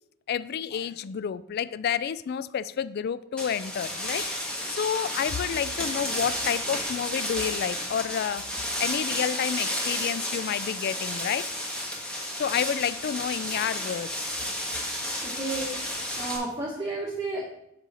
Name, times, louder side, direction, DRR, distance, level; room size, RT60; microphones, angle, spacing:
voice 1, 0.3-8.5 8.8-11.5 12.3-14.4, left 8 dB, 50° left, 0.3 m, -30 dB
sound 1, 3.4-16.4, left 1 dB, 5° left, 1.5 m, -32 dB
voice 2, 15.2-17.5, right 2 dB, 20° right, 1.2 m, -32 dB
6.4 x 6.4 x 4.1 m
head